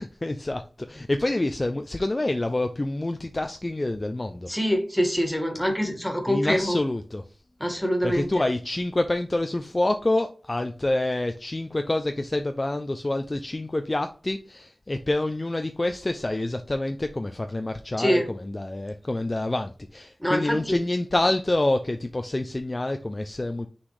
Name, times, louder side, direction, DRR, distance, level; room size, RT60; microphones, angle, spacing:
voice 1, 0.0-4.5 6.3-7.2 8.0-18.2 18.5-23.7, left 2 dB, 30° left, 7 dB, 0.5 m, -27 dB
voice 2, 4.5-6.8 7.6-8.4 18.0-18.3 20.2-20.8, equal, 5° left, 4 dB, 1.8 m, -25 dB
6.2 x 4.0 x 4.8 m, 0.37 s
wide cardioid pair, 80°, 0 cm